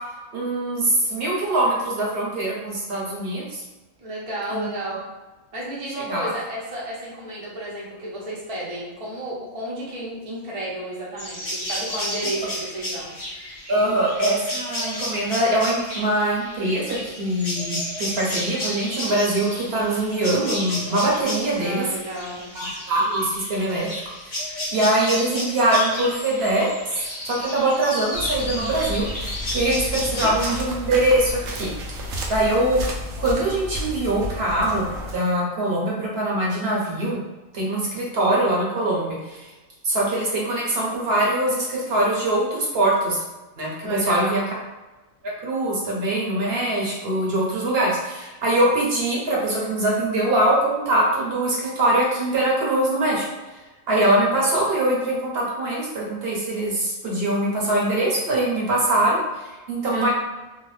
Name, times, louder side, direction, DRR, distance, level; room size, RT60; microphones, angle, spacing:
voice 1, 0.3-3.6 4.5-5.0 6.0-6.3 13.7-21.8 22.5-23.9 24.3-24.4 24.7-26.7 27.2-31.7 32.0-32.8 33.2-37.2 37.5-39.5 39.8-43.2 43.6-44.4 45.2-53.2 53.9-59.2 59.7-60.1, right 1 dB, 55° right, -4 dB, 1.0 m, -23 dB
voice 2, 4.0-5.0 5.5-13.1 13.7-13.8 21.6-22.4 30.0-30.4 43.8-44.4 59.9-60.1, right 1 dB, 35° right, -5 dB, 0.6 m, -32 dB
sound 1, 11.2-30.5, left 1 dB, 35° left, 0.6 m, -32 dB
sound 2, 28.1-35.1, left 1 dB, 85° right, 1.0 m, -32 dB
2.8 x 2.3 x 3.1 m, 1.1 s
omnidirectional pair, 1.3 m